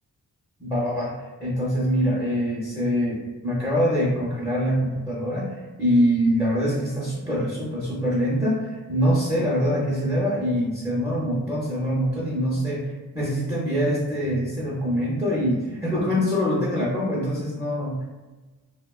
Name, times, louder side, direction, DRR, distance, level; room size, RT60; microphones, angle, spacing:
voice 1, 0.6-18.0, equal, 10° right, -6 dB, 0.5 m, -24 dB
2.8 x 2.1 x 2.3 m, 1.2 s
wide cardioid pair, 120°, 39 cm